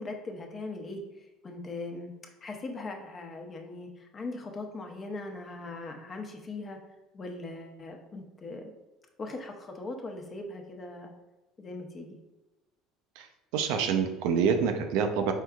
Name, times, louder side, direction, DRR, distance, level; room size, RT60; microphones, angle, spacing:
voice 1, 0.0-2.1 2.4-6.8 7.1-8.7 9.2-11.1 11.6-12.2, left 2 dB, 35° left, 3 dB, 0.8 m, -40 dB
voice 2, 13.5-15.3, right 6 dB, 75° right, 6 dB, 0.5 m, -26 dB
4.5 x 3.5 x 2.3 m, 1.1 s
hypercardioid pair, 80°, 0 cm